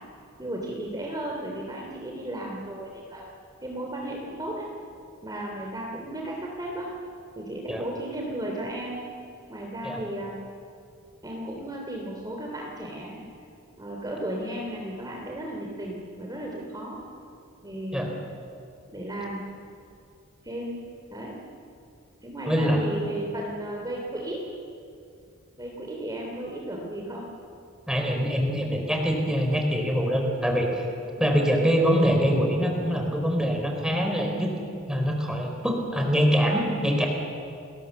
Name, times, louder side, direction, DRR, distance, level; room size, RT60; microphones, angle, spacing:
voice 1, 0.4-3.2 3.6-4.7 5.2-6.9 7.4-9.0 9.5-10.3 11.2-13.2 13.8-17.0 17.6-18.1 18.9-19.4 20.4-20.8 21.1-21.3 22.2-24.4 25.6-27.2 28.0-28.1, right 1 dB, 20° right, -1 dB, 3.1 m, -34 dB
voice 2, 22.5-22.8 27.9-30.9 31.2-34.5 34.9-37.1, equal, 5° right, 1 dB, 4.1 m, -24 dB
29.5 x 21.0 x 7.1 m, 2.5 s
head